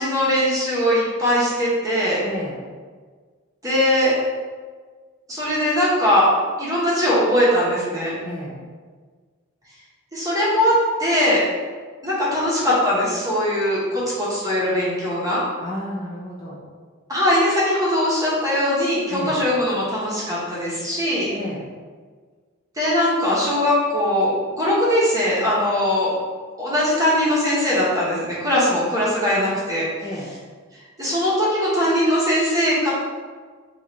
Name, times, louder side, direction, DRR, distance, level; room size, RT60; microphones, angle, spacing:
voice 1, 0.0-2.2 3.6-4.2 5.3-6.3 6.6-8.1 10.1-11.5 12.0-15.4 17.1-21.3 22.8-26.1 26.6-29.9 31.0-32.9, equal, 15° right, -7 dB, 0.9 m, -20 dB
voice 2, 2.2-2.6 8.2-8.6 15.6-16.6 19.1-19.4 21.3-21.7 30.0-30.3, left 1 dB, 20° left, -7 dB, 0.6 m, -31 dB
3.8 x 2.4 x 3.0 m, 1.5 s
head